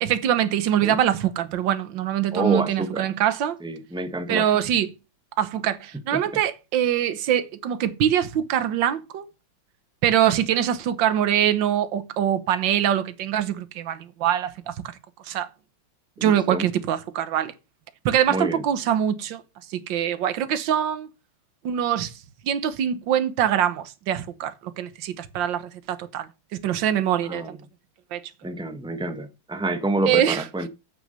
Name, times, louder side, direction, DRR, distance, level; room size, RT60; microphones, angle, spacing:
voice 1, 0.0-3.6 4.3-4.9 5.4-9.2 10.0-14.8 15.3-15.5 16.2-17.5 18.1-19.4 19.7-21.1 21.6-22.1 22.4-27.6 28.1-28.2 30.1-30.4, right 10 dB, 65° right, 1.7 m, -23 dB
voice 2, 2.3-3.1 3.6-4.5 6.1-6.2 16.2-16.7 18.3-18.6 27.2-27.5 28.4-30.7, right 2 dB, 10° right, 0.3 m, -28 dB
8.3 x 6.5 x 6.6 m
omnidirectional pair, 2.3 m